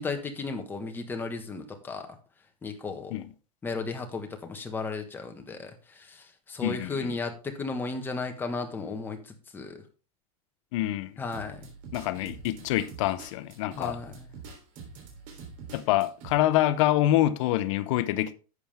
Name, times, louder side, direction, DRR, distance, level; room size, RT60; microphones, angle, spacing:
voice 1, 0.0-2.1 2.6-3.1 3.6-9.8 11.2-11.7 13.8-14.3, left 3 dB, 10° left, 1.3 m, -35 dB
voice 2, 6.6-7.2 10.7-11.1 11.9-14.0 15.7-18.3, left 14 dB, 55° left, 0.7 m, -26 dB
sound 1, 11.3-16.3, right 5 dB, 45° right, 3.3 m, -45 dB
11.0 x 7.1 x 3.5 m
supercardioid pair, 155°, 19 cm